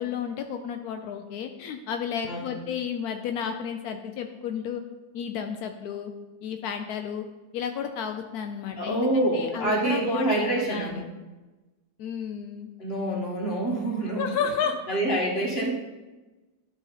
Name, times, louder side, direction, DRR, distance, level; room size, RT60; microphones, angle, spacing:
voice 1, 0.0-4.8 5.1-6.1 6.4-7.2 7.5-11.0 12.0-12.7 14.1-14.8, left 7 dB, 80° left, 6 dB, 0.8 m, -32 dB
voice 2, 8.8-11.0 12.8-14.4 14.9-15.7, right 1 dB, 35° left, -2 dB, 1.7 m, -26 dB
11.5 x 4.0 x 4.1 m, 1.2 s
omnidirectional pair, 2.2 m